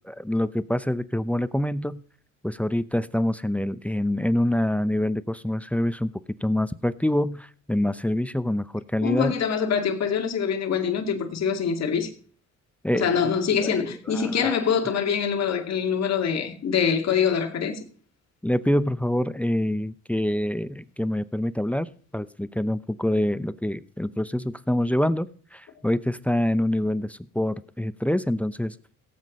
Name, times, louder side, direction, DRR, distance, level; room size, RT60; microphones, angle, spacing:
voice 1, 0.0-2.0 2.4-6.1 6.4-9.3 12.8-13.1 13.5-14.5 18.4-28.7, left 1 dB, 5° left, 0.6 m, -26 dB
voice 2, 9.0-12.1 12.9-17.8, left 7 dB, 60° left, 2.4 m, -24 dB
17.0 x 8.3 x 5.3 m
cardioid pair, 90°, 30 cm